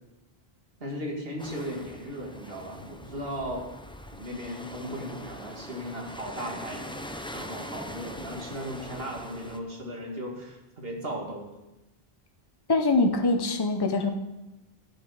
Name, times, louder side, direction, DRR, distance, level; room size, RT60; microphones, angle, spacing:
voice 1, 0.8-3.7 4.1-7.0 7.3-11.5, equal, 70° right, 0 dB, 2.3 m, -36 dB
sound 1, 1.4-9.6, left 1 dB, 5° left, 0.5 m, -42 dB
voice 2, 12.7-14.1, left 3 dB, 25° left, 5 dB, 0.9 m, -23 dB
12.0 x 9.2 x 4.9 m, 1.0 s
omnidirectional pair, 1.0 m